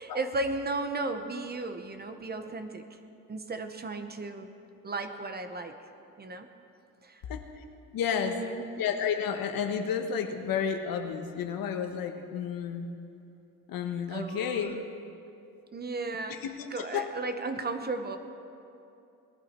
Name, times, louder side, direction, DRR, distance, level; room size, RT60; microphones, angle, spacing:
voice 1, 0.0-3.0 3.3-4.5 4.8-5.7 6.2-6.5 7.0-7.2 8.2-8.7 14.1-14.8 15.7-16.4 16.7-18.2, right 3 dB, 25° right, 8 dB, 0.8 m, -35 dB
voice 2, 7.3-7.6 7.9-8.4 8.8-12.9 13.7-14.8 16.3-17.1, left 7 dB, 70° left, 5 dB, 1.3 m, -31 dB
19.5 x 11.5 x 4.4 m, 2.7 s
cardioid pair, 120°, 36 cm